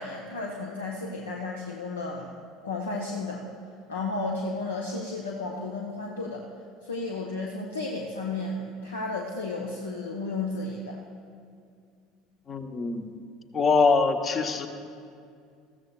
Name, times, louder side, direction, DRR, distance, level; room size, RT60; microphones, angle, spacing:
voice 1, 0.0-2.3 2.6-3.4 3.9-6.4 6.8-11.0, left 3 dB, 75° left, 0 dB, 0.8 m, -33 dB
voice 2, 12.5-13.1 13.5-14.7, left 4 dB, 30° left, 7 dB, 0.9 m, -23 dB
20.0 x 15.0 x 2.4 m, 2.3 s
figure-of-eight pair, 65°, 0 cm